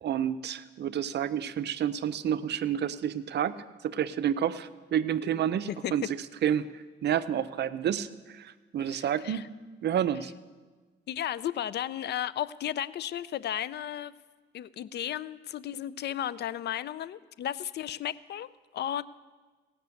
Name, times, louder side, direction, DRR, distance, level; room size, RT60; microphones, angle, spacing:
voice 1, 0.0-3.5 3.8-9.5 9.8-10.3, right 9 dB, 60° right, 14 dB, 0.6 m, -30 dB
voice 2, 8.8-9.5 11.1-14.1 14.5-19.0, left 11 dB, 60° left, 17 dB, 0.4 m, -34 dB
17.5 x 6.0 x 8.2 m, 1.4 s
cardioid pair, 90°, 20 cm